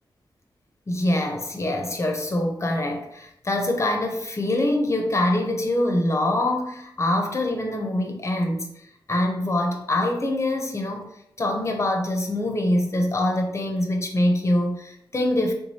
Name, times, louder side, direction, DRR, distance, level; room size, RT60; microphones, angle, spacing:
voice 1, 0.9-8.7 9.1-11.1 11.4-15.5, left 1 dB, 35° left, 3 dB, 0.5 m, -24 dB
3.4 x 3.1 x 2.7 m, 0.76 s
wide cardioid pair, 100°, 9 cm